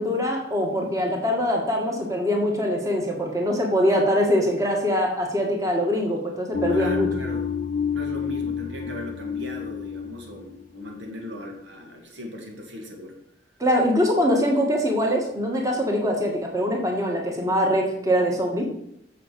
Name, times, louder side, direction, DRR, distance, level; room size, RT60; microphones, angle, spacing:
voice 1, 0.0-7.1 13.6-18.7, equal, 20° right, 0 dB, 1.7 m, -23 dB
sound 1, 6.5-11.6, left 7 dB, 40° left, 0.4 m, -29 dB
voice 2, 6.7-7.5 7.9-13.2, equal, 80° right, 2 dB, 2.1 m, -38 dB
7.5 x 6.9 x 7.0 m, 0.74 s
head